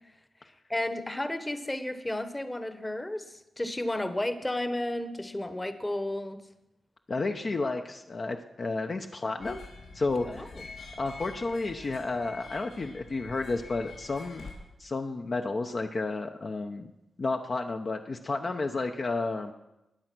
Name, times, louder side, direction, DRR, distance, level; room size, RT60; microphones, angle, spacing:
voice 1, 0.7-6.4 10.3-10.6, left 1 dB, 15° left, 11 dB, 1.1 m, -32 dB
voice 2, 7.1-9.6 9.9-10.5 11.0-14.5 14.8-16.9 17.2-19.5, left 3 dB, 40° left, 4 dB, 0.7 m, -31 dB
sound 1, 9.4-14.5, left 3 dB, 90° left, 5.3 m, -46 dB
20.5 x 7.8 x 6.1 m, 0.94 s
wide cardioid pair, 110°, 0 cm